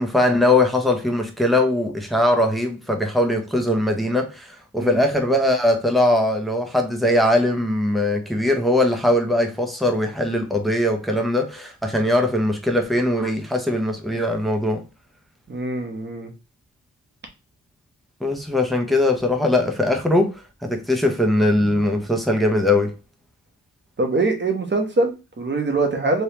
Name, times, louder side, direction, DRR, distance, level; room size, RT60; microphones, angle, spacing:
voice 1, 0.0-14.8 18.2-22.9, left 1 dB, ahead, 0.7 m, -20 dB
voice 2, 15.5-16.3 24.0-26.2, right 2 dB, 30° right, 0.9 m, -23 dB
3.3 x 3.0 x 2.9 m
wide cardioid pair, 125°, 34 cm